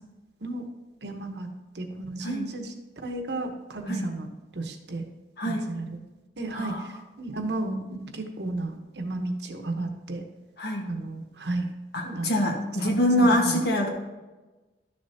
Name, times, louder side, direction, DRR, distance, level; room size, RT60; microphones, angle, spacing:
voice 1, 1.0-1.5 1.7-2.7 3.0-4.3 4.5-5.0 5.4-6.0 6.4-10.2 10.9-11.7 12.0-12.5 12.8-12.9 13.2-13.6, right 2 dB, 75° right, 5 dB, 1.1 m, -33 dB
voice 2, 5.4-5.7 6.5-6.8 10.6-10.9 11.9-13.9, left 1 dB, 65° left, 2 dB, 1.5 m, -25 dB
12.0 x 6.7 x 2.8 m, 1.2 s
head